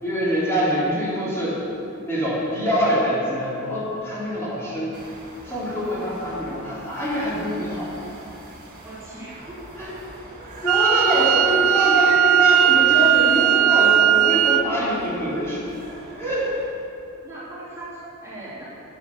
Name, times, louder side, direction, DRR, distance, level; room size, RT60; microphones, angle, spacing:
voice 1, 0.0-1.6 2.0-5.0 5.4-7.9 9.8-9.9 10.6-15.6 16.2-16.5, equal, 15° left, -9 dB, 3.0 m, -24 dB
sound 1, 4.9-16.7, right 1 dB, 40° right, 2.4 m, -43 dB
voice 2, 8.8-9.4 9.8-10.0 10.4-10.6 11.3-11.4 17.2-18.7, right 1 dB, 15° right, -9 dB, 2.9 m, -39 dB
Wind instrument woodwind instrument, 10.7-14.7, right 11 dB, 70° right, 0.3 m, -18 dB
9.5 x 8.5 x 7.0 m, 2.8 s
head